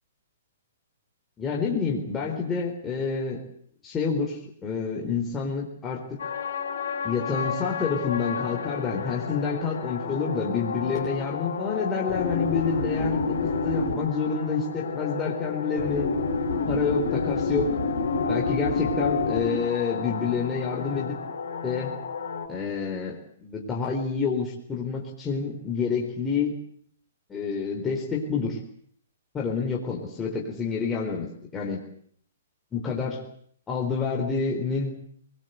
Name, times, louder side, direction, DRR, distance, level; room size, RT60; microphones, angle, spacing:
voice 1, 1.4-3.4 3.8-6.2 7.0-16.1 16.7-17.8 18.3-21.1 21.6-22.0 22.5-26.5 27.3-28.6 29.3-31.8 32.7-33.2 33.7-34.9, left 5 dB, 15° left, -2 dB, 4.0 m, -28 dB
sound 1, 6.2-22.5, left 4 dB, 75° left, 5.6 m, -29 dB
23.5 x 20.0 x 8.1 m, 0.62 s
hypercardioid pair, 145°, 0 cm